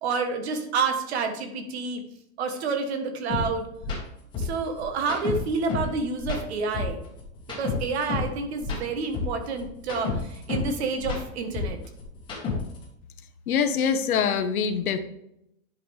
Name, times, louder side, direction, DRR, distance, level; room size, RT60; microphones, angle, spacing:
voice 1, 0.0-2.0 2.4-3.7 4.4-7.0 7.6-11.8, right 4 dB, 50° right, 6 dB, 1.4 m, -29 dB
sound 1, 3.3-3.4 3.8-4.0 4.3-5.9 6.2-8.3 8.6-10.7 11.0-12.8, left 4 dB, 10° left, 1.5 m, -30 dB
voice 2, 13.5-15.0, left 7 dB, 80° left, 8 dB, 1.2 m, -24 dB
10.5 x 5.4 x 3.4 m, 0.79 s
supercardioid pair, 170°, 43 cm